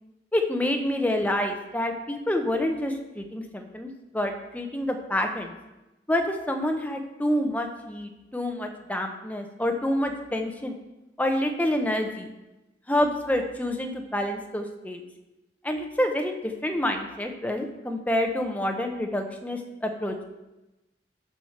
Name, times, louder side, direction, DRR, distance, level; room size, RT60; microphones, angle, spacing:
voice 1, 0.3-5.5 6.1-10.8 11.2-12.3 12.9-15.0 15.6-20.2, left 1 dB, 10° left, 3 dB, 0.8 m, -28 dB
7.2 x 6.3 x 5.8 m, 1.0 s
head